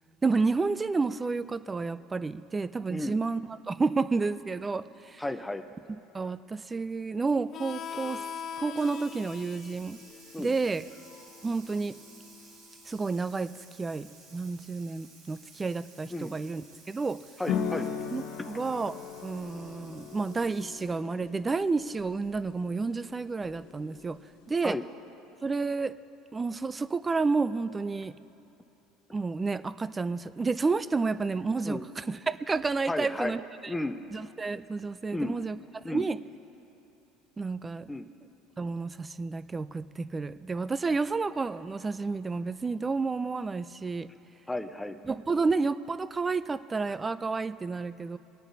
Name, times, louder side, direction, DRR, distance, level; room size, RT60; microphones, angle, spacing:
voice 1, 0.2-5.2 6.1-8.2 8.6-10.0 10.4-10.9 11.4-12.0 12.9-17.2 18.1-18.2 18.5-24.2 24.5-24.8 25.4-25.9 26.3-28.1 29.1-33.4 34.1-35.6 35.9-36.2 37.4-37.9 38.6-44.1 45.1-48.2, right 4 dB, 20° right, 15 dB, 0.4 m, -30 dB
voice 2, 5.2-5.6 10.3-10.5 16.1-16.4 17.4-17.9 24.6-24.8 31.6-31.9 32.9-33.4 33.7-34.0 35.1-35.4 35.8-36.1 37.9-38.1 44.5-45.0, left 2 dB, 10° left, 9 dB, 0.7 m, -33 dB
Harmonica, 7.5-12.8, left 8 dB, 45° left, 0.4 m, -43 dB
Water tap faucet / Sink (filling or washing), 8.6-21.1, right 3 dB, 70° right, 3.0 m, -55 dB
sound 1, 17.5-24.8, left 7 dB, 70° left, 0.9 m, -38 dB
24.5 x 8.9 x 2.7 m, 2.9 s
supercardioid pair, 95°, 0 cm